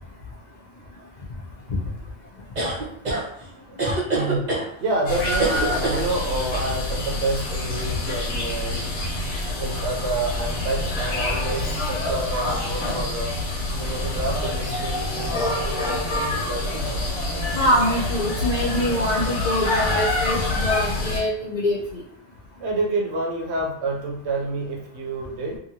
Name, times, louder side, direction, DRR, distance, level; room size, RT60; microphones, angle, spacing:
sound 1, 2.6-3.2 3.8-4.7 5.4-6.0, right 2 dB, 40° right, 0.9 m, -24 dB
voice 1, 3.6-17.0 22.6-25.6, right 2 dB, 70° right, 0 dB, 0.9 m, -29 dB
sound 2, 5.1-21.2, left 2 dB, 90° left, 1.2 m, -26 dB
voice 2, 17.5-22.0, left 1 dB, 50° left, -5 dB, 0.6 m, -24 dB
2.7 x 2.6 x 2.8 m, 0.70 s
omnidirectional pair, 1.2 m